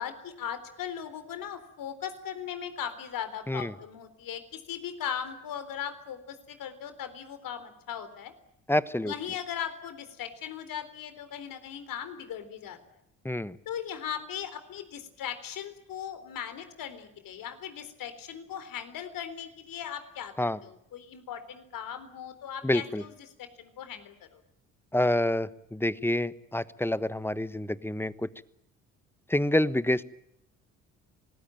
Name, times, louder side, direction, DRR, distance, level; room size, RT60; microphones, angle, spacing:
voice 1, 0.0-8.3 9.0-12.8 13.7-23.1 23.4-24.4, left 9 dB, 60° left, 11 dB, 3.9 m, -38 dB
voice 2, 8.7-9.1 13.2-13.6 20.4-20.6 22.6-23.0 24.9-28.3 29.3-30.0, left 1 dB, 5° left, 17 dB, 1.2 m, -27 dB
27.0 x 20.0 x 9.0 m, 0.76 s
hypercardioid pair, 55°, 39 cm